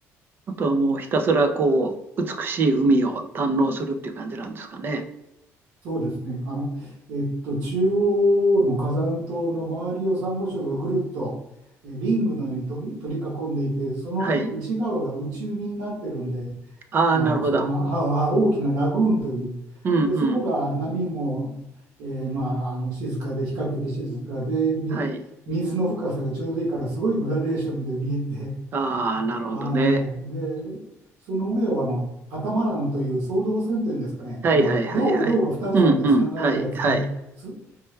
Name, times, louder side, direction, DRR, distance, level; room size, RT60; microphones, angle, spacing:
voice 1, 0.5-5.0 14.2-14.5 16.9-17.7 19.8-20.4 24.9-25.2 28.7-30.0 34.4-35.0 35.7-37.1, right 3 dB, 40° right, 6 dB, 0.5 m, -22 dB
voice 2, 5.8-11.3 11.8-16.5 17.1-19.5 20.0-21.5 22.0-25.0 25.5-28.5 29.1-29.2 29.5-30.8 31.3-32.0 32.3-37.0 37.4-37.6, right 1 dB, 85° right, -6 dB, 1.4 m, -26 dB
4.4 x 2.2 x 3.3 m, 0.88 s
cardioid pair, 145°, 6 cm